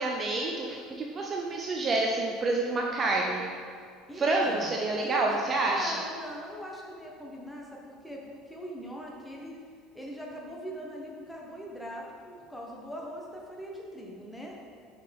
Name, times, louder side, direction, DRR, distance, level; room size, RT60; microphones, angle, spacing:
voice 1, 0.0-3.5 4.2-5.9, right 2 dB, 30° right, 0 dB, 0.6 m, -28 dB
voice 2, 4.1-4.7 5.0-9.6 9.9-14.6, equal, 5° left, -2 dB, 1.3 m, -41 dB
6.5 x 5.4 x 3.5 m, 2.2 s
figure-of-eight pair, 65°, 0 cm